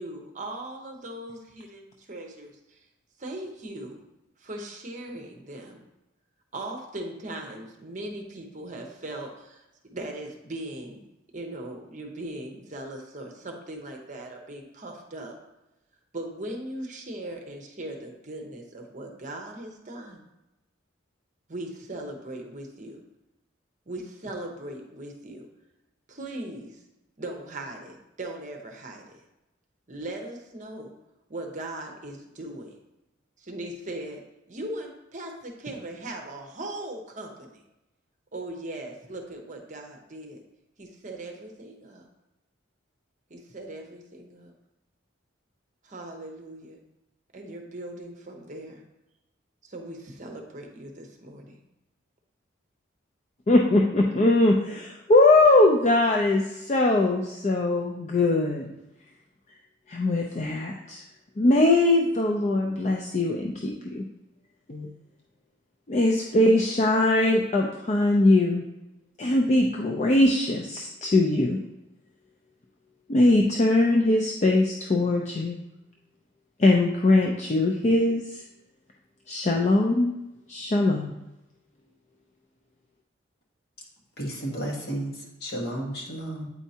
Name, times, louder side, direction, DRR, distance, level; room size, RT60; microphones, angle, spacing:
voice 1, 0.0-2.8 3.2-4.0 4.4-5.8 6.5-9.6 9.9-11.0 11.3-15.3 16.1-20.2 21.5-23.0 23.9-25.5 26.1-26.8 27.2-29.2 29.9-30.9 31.3-32.8 33.4-34.2 34.5-37.6 38.3-40.4 40.8-42.1 43.3-44.5 45.8-46.8 47.3-48.8 49.6-51.6, right 1 dB, 40° right, 2 dB, 0.7 m, -39 dB
voice 2, 53.5-58.6 59.9-61.0 61.4-64.1 64.7-64.9 65.9-68.6 69.2-71.6 73.1-75.6 76.6-78.2 79.3-80.1 80.5-81.1, left 2 dB, 35° left, 1 dB, 0.4 m, -21 dB
voice 3, 84.2-85.1 85.4-86.5, right 1 dB, 50° left, -2 dB, 1.4 m, -32 dB
8.2 x 4.5 x 2.8 m, 0.94 s
head